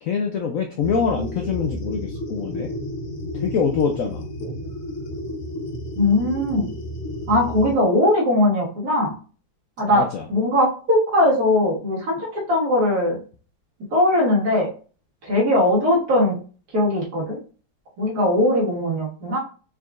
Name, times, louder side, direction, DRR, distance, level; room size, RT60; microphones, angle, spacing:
voice 1, 0.0-2.7 3.3-4.3 9.9-10.3, left 6 dB, 70° left, 3 dB, 0.7 m, -24 dB
sound 1, 0.8-7.8, equal, 55° left, 1.2 m, -32 dB
voice 2, 6.0-6.7 7.3-9.1 9.8-10.0 10.3-13.2 13.9-14.7 15.2-16.4 16.7-17.4 18.0-19.4, left 1 dB, 55° right, -6 dB, 1.9 m, -20 dB
4.6 x 3.8 x 2.4 m, 0.38 s
omnidirectional pair, 2.0 m